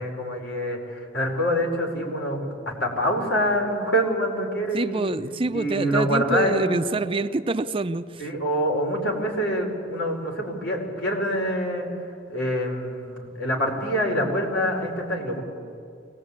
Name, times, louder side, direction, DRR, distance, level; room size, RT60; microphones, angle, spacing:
voice 1, 0.0-5.1 5.5-6.8 8.2-15.4, equal, 70° left, 1 dB, 5.0 m, -26 dB
voice 2, 4.7-8.2, right 2 dB, 30° right, 11 dB, 0.5 m, -26 dB
23.5 x 19.0 x 8.7 m, 2.3 s
head